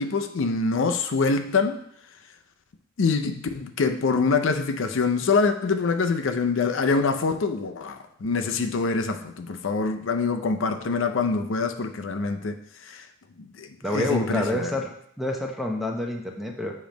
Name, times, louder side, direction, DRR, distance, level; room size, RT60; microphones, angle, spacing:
voice 1, 0.0-1.8 3.0-12.6 12.9-13.0 13.6-14.7, left 4 dB, 80° left, 7 dB, 0.5 m, -25 dB
voice 2, 13.8-16.7, left 1 dB, ahead, 1 dB, 0.8 m, -28 dB
7.0 x 3.1 x 5.1 m, 0.68 s
head